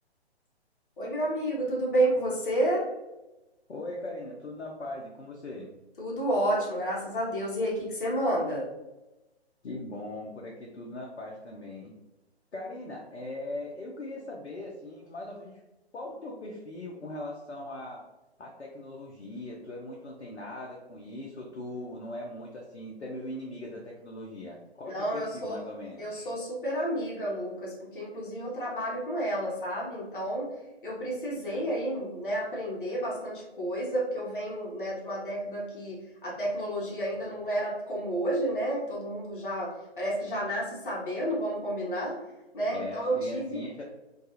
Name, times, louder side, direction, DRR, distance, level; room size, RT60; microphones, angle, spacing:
voice 1, 1.0-2.8 6.0-8.7 24.8-25.6 26.0-30.5 30.8-42.2 42.5-43.6, right 1 dB, 50° left, -4 dB, 0.8 m, -30 dB
voice 2, 3.7-5.8 9.6-11.9 12.5-15.6 15.9-18.0 18.4-26.3 42.7-43.8, left 1 dB, 85° left, -2 dB, 0.5 m, -40 dB
2.3 x 2.3 x 2.8 m, 1.0 s
figure-of-eight pair, 135°, 33 cm